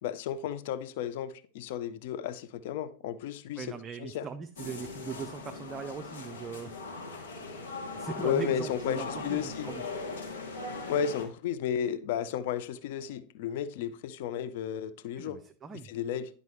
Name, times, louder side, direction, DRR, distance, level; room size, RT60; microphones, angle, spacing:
voice 1, 0.0-3.7 4.0-4.3 8.2-9.7 10.9-15.4 15.9-16.3, left 8 dB, 50° left, 0.5 m, -33 dB
voice 2, 3.6-6.8 7.9-9.8 15.2-15.9, right 5 dB, 20° right, 0.5 m, -40 dB
sound 1, 4.6-11.2, left 3 dB, 65° left, 2.0 m, -40 dB
10.5 x 5.2 x 3.2 m
figure-of-eight pair, 90°, 0 cm